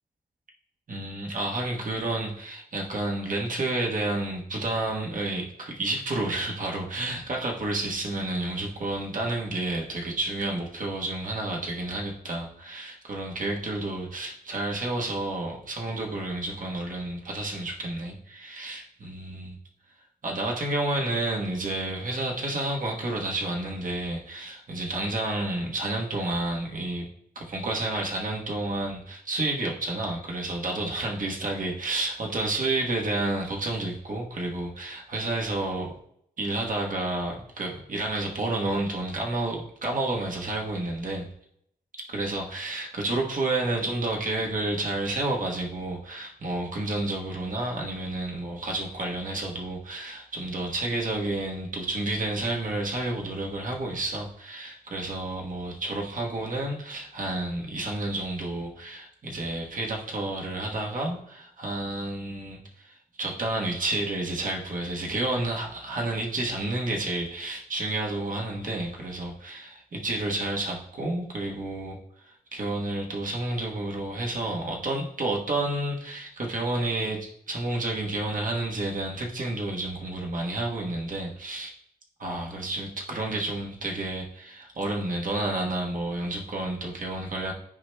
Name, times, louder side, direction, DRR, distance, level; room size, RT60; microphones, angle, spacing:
voice 1, 0.9-19.6 20.2-27.1 27.3-35.9 36.4-41.3 42.1-72.0 72.2-81.7 82.2-87.5, right 2 dB, 55° right, -1 dB, 1.2 m, -30 dB
11.0 x 4.8 x 2.2 m, 0.72 s
wide cardioid pair, 145°, 16 cm